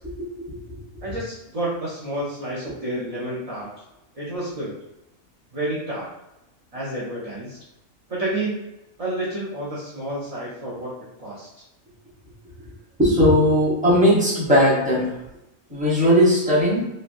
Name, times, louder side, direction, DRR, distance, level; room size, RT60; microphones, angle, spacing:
voice 1, 0.4-0.8 13.0-15.2 15.7-16.8, equal, 5° right, -7 dB, 0.8 m, -18 dB
voice 2, 1.0-3.7 4.1-4.7 5.5-6.1 6.7-7.6 8.1-8.7 9.0-10.9 11.2-11.5, right 1 dB, 40° right, -7 dB, 0.5 m, -29 dB
3.2 x 2.8 x 2.5 m, 0.91 s
omnidirectional pair, 1.5 m